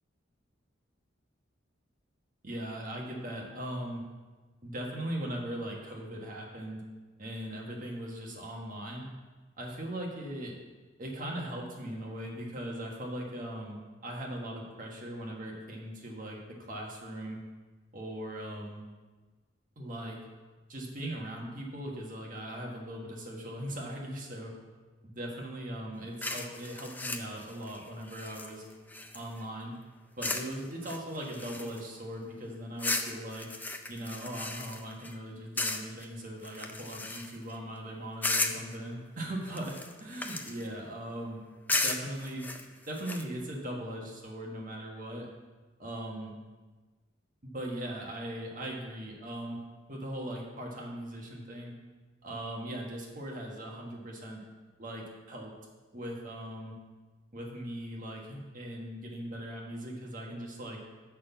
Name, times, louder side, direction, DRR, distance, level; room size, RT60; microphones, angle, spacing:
voice 1, 2.4-4.0 4.6-6.8 7.2-9.1 9.6-10.6 11.0-16.4 16.7-17.4 17.9-18.8 19.8-20.2 20.7-24.5 25.0-28.6 29.1-29.7 30.2-33.5 33.9-39.7 40.0-41.4 41.7-42.4 42.9-45.3 45.8-46.3 47.4-49.6 49.9-51.7 52.2-54.4 54.8-55.5 55.9-56.7 57.3-60.8, right 1 dB, 40° right, -1 dB, 1.4 m, -39 dB
sound 1, 26.2-29.4 30.2-30.5 30.8-32.0 32.8-35.1 35.6-36.0 36.4-37.5 38.2-38.7 39.4-40.7 41.7-43.2, left 2 dB, 10° left, 0.4 m, -35 dB
6.2 x 5.9 x 7.0 m, 1.3 s
head